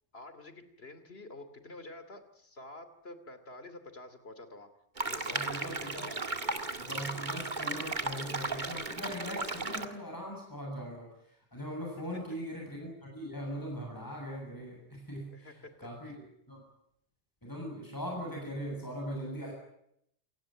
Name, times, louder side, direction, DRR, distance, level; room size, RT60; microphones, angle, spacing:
voice 1, 0.1-4.7 5.0-6.4 12.0-12.2 15.3-15.9, left 2 dB, 60° left, 10 dB, 3.0 m, -48 dB
sound 1, 5.0-9.8, right 3 dB, 40° right, 2.1 m, -35 dB
voice 2, 5.3-6.1 6.8-16.6 17.4-19.5, equal, 15° left, -1 dB, 7.5 m, -40 dB
28.5 x 17.5 x 9.0 m, 0.75 s
omnidirectional pair, 1.2 m